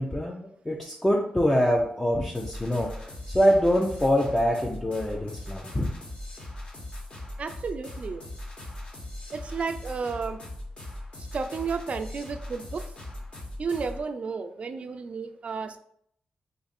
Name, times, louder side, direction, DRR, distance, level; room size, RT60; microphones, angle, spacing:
voice 1, 0.0-2.9 3.3-5.9, equal, 15° left, -2 dB, 0.5 m, -24 dB
sound 1, 2.3-14.1, left 1 dB, 45° left, 1.2 m, -40 dB
voice 2, 7.4-8.2 9.3-10.4 11.2-12.9 13.6-15.8, right 5 dB, 55° right, 9 dB, 0.3 m, -32 dB
2.5 x 2.5 x 4.1 m, 0.68 s
cardioid pair, 60°, 3 cm